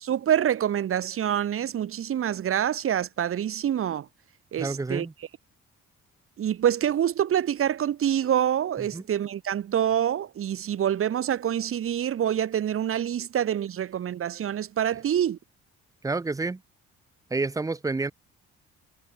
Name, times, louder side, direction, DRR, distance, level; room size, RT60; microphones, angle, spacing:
voice 1, 0.0-4.1 4.5-5.1 6.4-15.4, right 10 dB, 45° right, 0.8 m, -26 dB
voice 2, 4.6-5.1 8.9-9.0 16.0-16.6 17.3-18.1, right 3 dB, 10° right, 0.6 m, -29 dB
cardioid pair, 90°, 30 cm